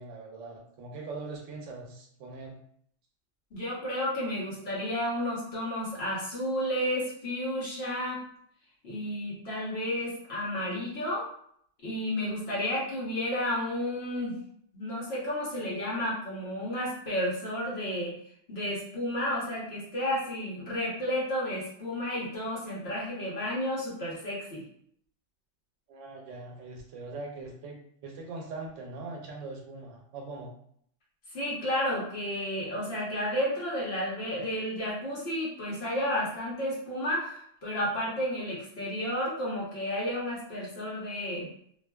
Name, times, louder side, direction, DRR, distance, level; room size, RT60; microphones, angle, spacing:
voice 1, 0.0-2.6 25.9-30.5, right 3 dB, 80° right, 1 dB, 0.9 m, -41 dB
voice 2, 3.5-8.2 8.8-11.3 11.8-14.4 14.7-18.1 18.5-24.6 31.3-41.5, left 1 dB, 55° left, -6 dB, 1.1 m, -32 dB
2.5 x 2.3 x 2.2 m, 0.66 s
omnidirectional pair, 1.3 m